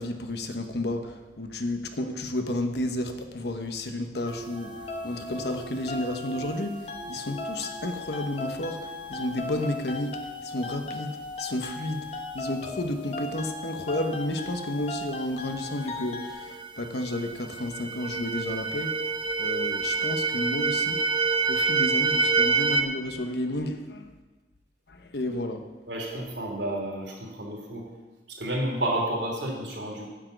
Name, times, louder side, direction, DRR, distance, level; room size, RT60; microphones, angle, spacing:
voice 1, 0.0-4.8 5.0-19.0 19.4-21.0 21.5-24.1 24.9-25.6, left 1 dB, 70° left, 6 dB, 1.1 m, -32 dB
sound 1, 4.3-9.6 15.8-15.9 16.3-22.8, right 4 dB, 25° right, 0.7 m, -29 dB
sound 2, 4.6-16.3, left 2 dB, 35° left, 1.1 m, -38 dB
voice 2, 25.9-27.8 28.3-30.1, right 1 dB, 85° right, -1 dB, 3.1 m, -31 dB
9.9 x 6.2 x 7.9 m, 1.2 s
head